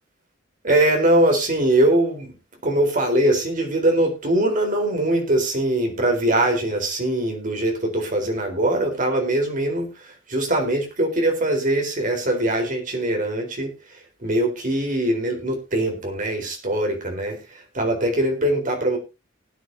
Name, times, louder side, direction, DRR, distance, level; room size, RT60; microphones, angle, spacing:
voice 1, 0.6-2.3 2.6-13.7 14.2-19.0, right 1 dB, 45° right, 3 dB, 4.0 m, -22 dB
19.5 x 9.7 x 2.7 m, 0.26 s
head